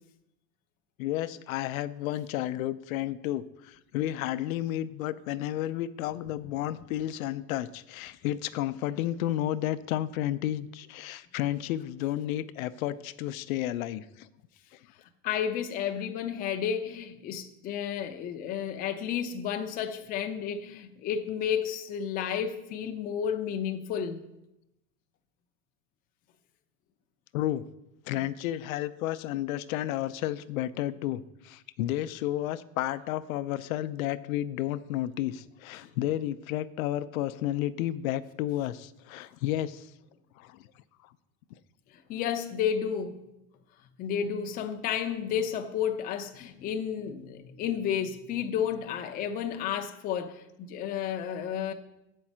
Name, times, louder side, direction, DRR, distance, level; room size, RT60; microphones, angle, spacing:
voice 1, 1.0-14.3 27.3-27.6 28.1-39.9 40.4-40.7 41.0-41.1, left 13 dB, 80° left, 0.6 m, -32 dB
voice 2, 15.2-24.2 35.8-35.9 42.1-43.2 44.0-51.7, left 8 dB, 20° left, 0.5 m, -32 dB
7.8 x 5.4 x 7.2 m
supercardioid pair, 160°, 41 cm